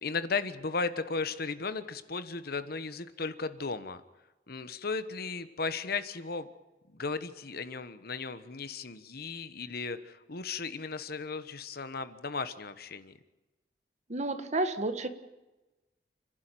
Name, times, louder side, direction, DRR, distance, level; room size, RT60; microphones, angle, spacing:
voice 1, 0.0-4.0 4.5-6.5 6.9-13.2, left 4 dB, 60° left, 12 dB, 1.2 m, -35 dB
voice 2, 14.1-15.1, right 2 dB, 40° right, 9 dB, 1.6 m, -31 dB
30.0 x 11.5 x 9.2 m, 1.1 s
head